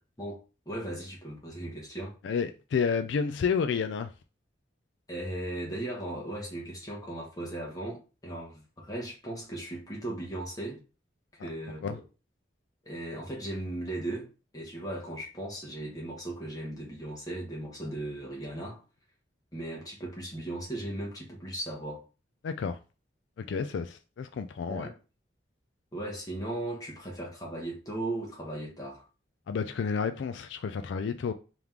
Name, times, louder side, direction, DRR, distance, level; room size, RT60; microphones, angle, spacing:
voice 1, 0.6-2.1 5.1-10.8 11.4-12.0 12.8-18.8 19.5-22.0 24.7-25.0 25.9-29.1, right 1 dB, 20° left, 1.3 m, -37 dB
voice 2, 2.2-4.1 11.4-11.5 11.8-12.0 22.4-22.8 23.4-24.9 29.5-31.3, left 6 dB, 70° left, 0.3 m, -30 dB
3.5 x 3.1 x 3.6 m
head